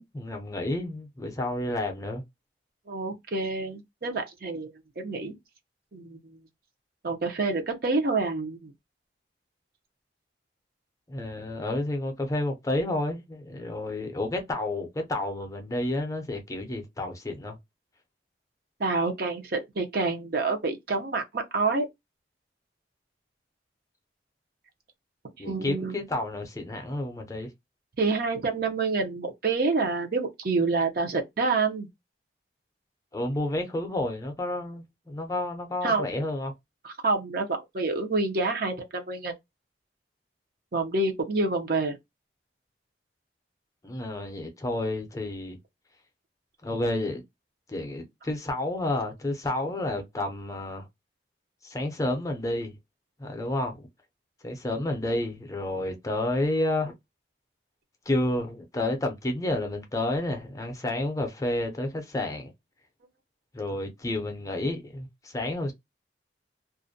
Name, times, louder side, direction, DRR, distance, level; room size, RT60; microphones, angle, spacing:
voice 1, 0.0-2.2 11.1-17.6 25.4-27.5 33.1-36.5 43.8-45.6 46.6-47.2 47.7-50.9 51.6-52.8 53.2-53.9 54.4-56.9 58.1-62.5 63.5-65.7, left 1 dB, 20° left, 0.5 m, -30 dB
voice 2, 2.9-4.7 5.0-5.3 5.9-6.2 7.0-8.7 18.8-21.8 25.4-26.0 28.0-31.9 35.8-36.1 36.8-37.5 37.7-39.3 40.7-42.0, right 3 dB, 55° right, 0.6 m, -27 dB
2.4 x 2.1 x 2.5 m
head